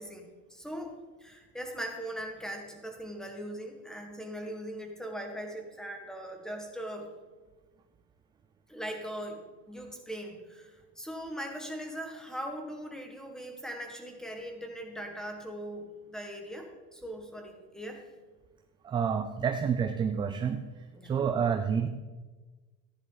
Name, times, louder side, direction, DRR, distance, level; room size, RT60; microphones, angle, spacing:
voice 1, 0.0-7.1 8.7-18.0 20.9-21.2, equal, ahead, 3 dB, 1.6 m, -40 dB
voice 2, 18.8-20.6 21.0-21.9, right 7 dB, 15° right, 7 dB, 0.3 m, -28 dB
14.0 x 10.0 x 3.9 m, 1.3 s
cardioid pair, 150°, 36 cm